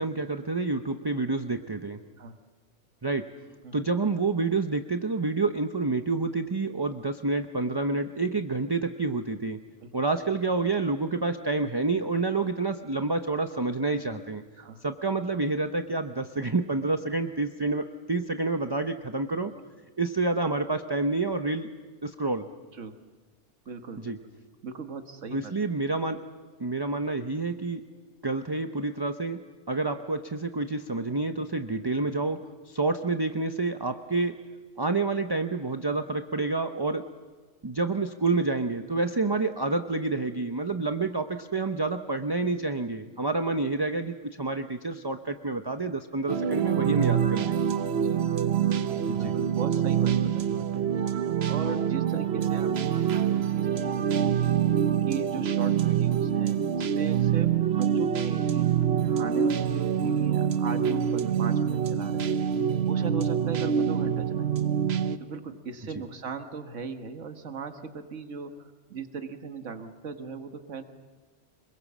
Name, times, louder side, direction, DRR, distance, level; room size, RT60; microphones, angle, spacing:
voice 1, 0.0-2.0 3.0-3.2 3.7-9.6 9.9-14.4 14.8-19.5 20.0-21.7 22.0-22.5 24.0-24.2 25.3-26.2 26.6-27.8 28.2-29.4 29.7-32.4 32.7-34.4 34.8-37.0 37.6-47.6 49.1-49.3, right 3 dB, 25° right, 7 dB, 0.7 m, -28 dB
voice 2, 23.7-24.1 24.6-25.5 47.9-48.3 48.7-50.9 51.5-54.5 55.0-58.7 59.2-62.5 62.9-64.5 65.2-70.8, right 5 dB, 80° right, 6 dB, 1.7 m, -38 dB
sound 1, 46.3-65.2, right 8 dB, 60° right, 1.1 m, -25 dB
26.0 x 22.5 x 7.4 m, 1.4 s
omnidirectional pair, 1.3 m